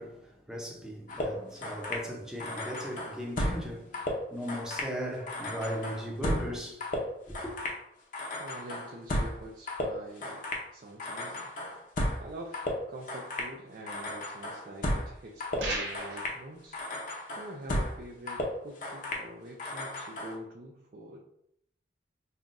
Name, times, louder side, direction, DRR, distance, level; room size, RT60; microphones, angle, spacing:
voice 1, 0.0-4.0 4.3-6.8 7.3-7.5, equal, 5° right, 0.7 m, -37 dB
sound 1, 1.1-2.1 2.4-3.7 3.9-4.9 5.3-7.8 8.1-9.4 9.7-10.7 11.0-12.3 12.5-13.5 13.9-15.1 15.4-16.4 16.7-18.0 18.3-19.3 19.6-20.4, left 1 dB, 45° left, 0.7 m, -34 dB
voice 2, 8.4-10.5 10.7-11.5 12.2-16.8 17.3-21.2, right 1 dB, 50° right, 0.5 m, -45 dB
sound 2, 15.6-16.3, right 2 dB, 70° right, 1.2 m, -34 dB
5.5 x 2.3 x 2.5 m
head